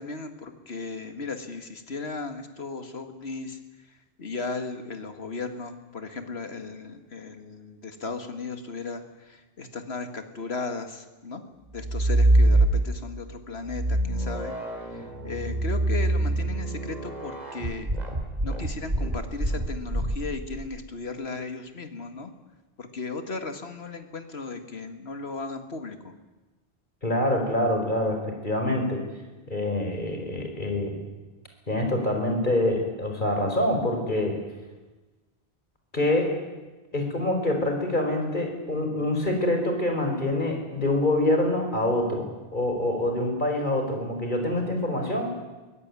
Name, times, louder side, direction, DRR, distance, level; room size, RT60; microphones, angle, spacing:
voice 1, 0.0-3.6 4.2-11.4 11.7-14.5 15.2-17.9 18.4-22.3 22.8-26.1, left 3 dB, 75° left, 7 dB, 2.2 m, -36 dB
sound 1, 11.8-13.2 13.7-20.6, right 1 dB, 40° right, 3.5 m, -25 dB
voice 2, 27.0-28.2 28.4-29.0 29.5-31.0 31.7-34.4 35.9-36.4 36.9-45.4, left 1 dB, 50° left, 3 dB, 5.1 m, -25 dB
23.5 x 16.5 x 9.7 m, 1.2 s
omnidirectional pair, 1.1 m